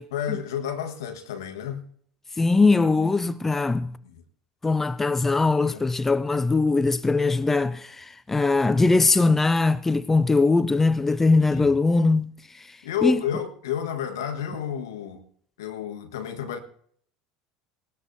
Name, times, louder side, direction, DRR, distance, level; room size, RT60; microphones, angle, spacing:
voice 1, 0.1-1.9 4.0-4.2 5.6-5.8 8.7-8.8 11.3-11.7 12.8-15.2 15.6-16.6, left 9 dB, 75° left, 1.5 m, -31 dB
voice 2, 2.4-4.0 4.6-12.8 13.0-13.2, left 3 dB, 15° left, 0.5 m, -21 dB
19.0 x 17.5 x 2.7 m
hypercardioid pair, 75°, 2 cm